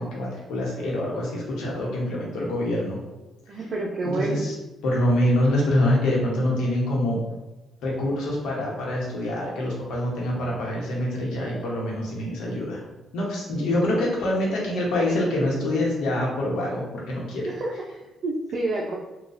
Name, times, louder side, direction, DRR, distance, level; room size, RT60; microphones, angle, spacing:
voice 1, 0.0-3.0 3.5-3.7 4.0-4.5 4.8-7.2 7.8-12.8 13.1-17.5, left 1 dB, 85° left, -3 dB, 1.0 m, -25 dB
voice 2, 3.5-4.4 17.4-17.7 18.2-18.9, right 2 dB, 55° right, -3 dB, 0.5 m, -28 dB
4.0 x 2.3 x 2.5 m, 1.1 s
cardioid pair, 90°, 0 cm